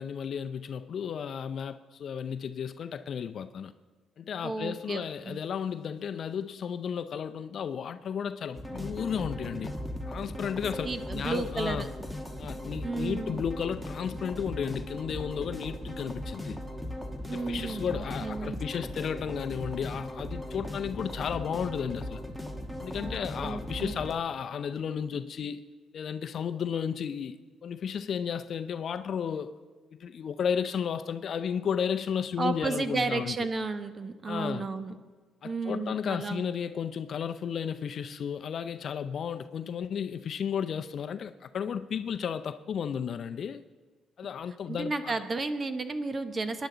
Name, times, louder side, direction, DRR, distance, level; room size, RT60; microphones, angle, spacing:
voice 1, 0.0-3.7 4.2-9.7 10.1-11.9 12.4-16.6 17.2-22.2 22.8-25.7 25.9-29.6 29.9-33.4 34.2-34.7 35.4-43.6 44.2-45.2, left 7 dB, 60° left, 0.5 m, -33 dB
voice 2, 4.4-5.4 10.8-11.9 12.8-13.4 17.3-18.6 22.9-24.0 32.4-35.0 35.4-36.5 44.7-46.7, right 3 dB, 35° right, 1.1 m, -33 dB
sound 1, 8.5-24.1, left 1 dB, ahead, 1.5 m, -38 dB
21.5 x 10.5 x 3.9 m
cardioid pair, 90°, 0 cm